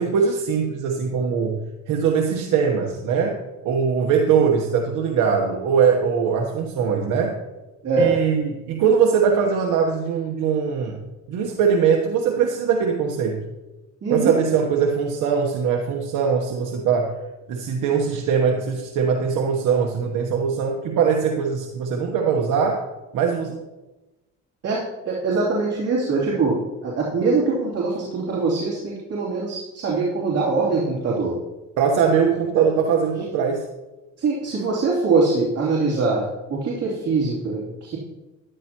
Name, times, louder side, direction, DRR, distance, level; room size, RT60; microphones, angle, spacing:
voice 1, 0.0-1.6 1.9-7.3 8.0-11.0 11.3-13.4 14.1-17.2 17.5-22.8 23.1-23.6 31.8-33.7, right 6 dB, 90° right, 2 dB, 1.1 m, -21 dB
voice 2, 7.8-8.2 14.0-14.3 24.6-24.8 25.0-26.6 26.8-31.3 34.2-38.0, right 4 dB, 55° right, -6 dB, 3.2 m, -23 dB
13.5 x 11.0 x 2.9 m, 1.1 s
cardioid pair, 90°, 30 cm